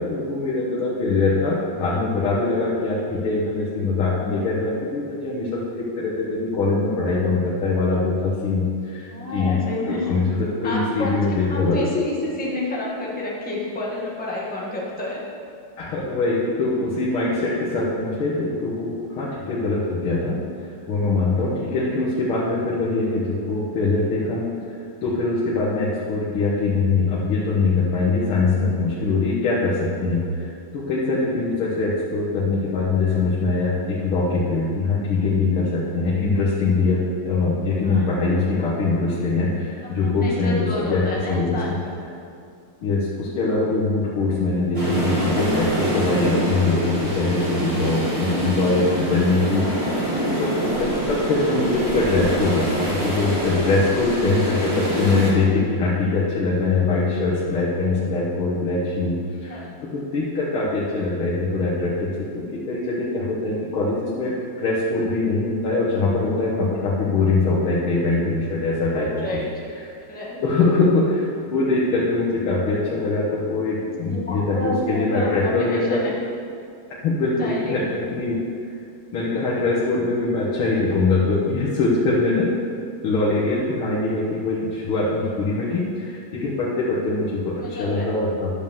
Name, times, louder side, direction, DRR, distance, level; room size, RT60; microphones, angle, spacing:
voice 1, 0.0-9.6 9.9-10.2 10.6-11.8 15.8-41.8 42.8-59.2 59.4-69.4 70.4-76.0 77.0-78.4 79.1-82.5 83.0-88.5, left 3 dB, 75° left, -7 dB, 2.1 m, -23 dB
voice 2, 0.6-1.0 9.1-10.1 10.6-15.3 37.8-38.1 39.8-42.0 50.2-50.6 59.5-59.8 68.9-69.5 70.1-70.4 73.7-76.1 77.4-77.8 87.6-88.1, left 2 dB, 5° left, -4 dB, 1.3 m, -30 dB
sound 1, 44.7-55.3, right 1 dB, 15° right, 1.8 m, -25 dB
11.0 x 5.4 x 7.0 m, 2.4 s
omnidirectional pair, 2.4 m